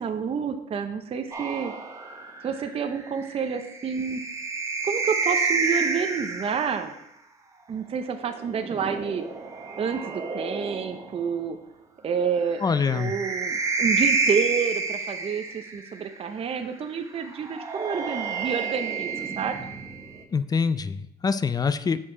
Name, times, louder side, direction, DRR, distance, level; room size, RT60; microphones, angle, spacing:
voice 1, 0.0-1.7 2.4-4.2 4.8-6.9 7.7-9.2 9.8-11.6 12.0-12.6 12.9-19.6, right 6 dB, 35° right, 7 dB, 0.6 m, -29 dB
sound 1, 1.3-6.8 8.2-11.2 12.6-16.0 17.3-20.2, right 4 dB, 20° right, 1.0 m, -29 dB
voice 2, 12.6-13.1 20.3-22.0, left 5 dB, 25° left, 13 dB, 0.3 m, -25 dB
7.2 x 4.5 x 4.9 m, 0.81 s
cardioid pair, 110°, 17 cm